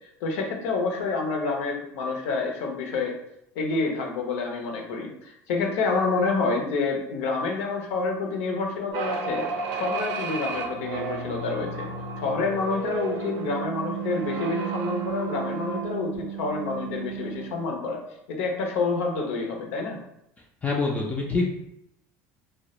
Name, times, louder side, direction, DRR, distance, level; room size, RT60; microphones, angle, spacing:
voice 1, 0.2-3.1 3.6-9.5 9.7-11.9 12.2-18.0 18.3-20.0, left 4 dB, 85° left, 1 dB, 0.6 m, -28 dB
sound 1, 8.9-17.7, right 5 dB, 70° right, 0.4 m, -32 dB
voice 2, 20.6-21.5, left 3 dB, 20° left, -1 dB, 0.3 m, -25 dB
2.2 x 2.1 x 2.8 m, 0.79 s
supercardioid pair, 120°, 7 cm